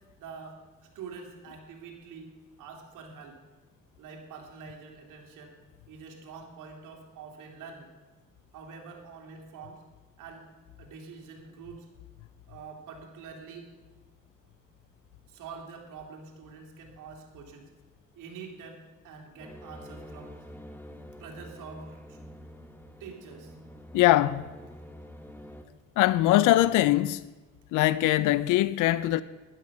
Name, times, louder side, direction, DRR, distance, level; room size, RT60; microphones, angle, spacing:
voice 1, 0.1-2.3 2.6-3.4 4.0-5.6 5.9-7.9 8.5-9.8 10.2-10.5 10.8-11.9 12.5-13.7 15.3-17.7 18.1-20.4 21.2-22.2 23.0-23.6, right 5 dB, 90° right, 2.5 m, -45 dB
sound 1, 19.4-25.6, equal, 5° left, 1.3 m, -47 dB
voice 2, 23.9-24.4 26.0-27.2 27.7-29.2, left 15 dB, 90° left, 0.5 m, -22 dB
12.0 x 10.5 x 5.7 m
cardioid pair, 90°, 30 cm